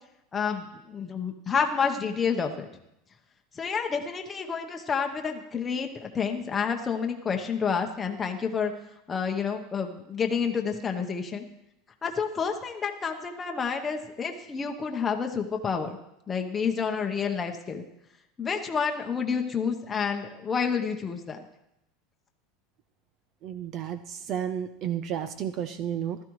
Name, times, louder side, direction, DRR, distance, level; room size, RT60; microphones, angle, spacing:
voice 1, 0.3-2.7 3.6-8.7 9.1-11.5 12.0-16.0 16.3-17.8 18.4-21.4, left 6 dB, 15° left, 3 dB, 0.9 m, -29 dB
voice 2, 23.4-26.2, right 9 dB, 40° right, 11 dB, 0.5 m, -32 dB
15.5 x 12.5 x 3.1 m, 0.85 s
supercardioid pair, 160°, 0 cm